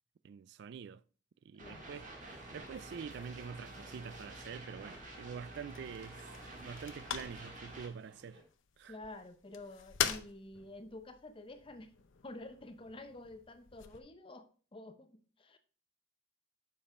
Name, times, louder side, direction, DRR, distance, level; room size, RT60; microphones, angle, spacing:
voice 1, 0.2-1.0 1.4-2.1 2.5-6.3 6.5-8.4 8.8-9.0, right 6 dB, 60° right, 0.3 m, -46 dB
sound 1, 1.6-7.9, right 2 dB, 40° right, 1.6 m, -49 dB
sound 2, 1.7-8.4, right 1 dB, 85° right, 2.8 m, -62 dB
sound 3, 4.0-14.0, left 8 dB, 80° left, 0.7 m, -44 dB
voice 2, 8.9-11.9 12.2-15.6, left 2 dB, 25° left, 0.6 m, -49 dB
7.2 x 5.2 x 4.2 m
head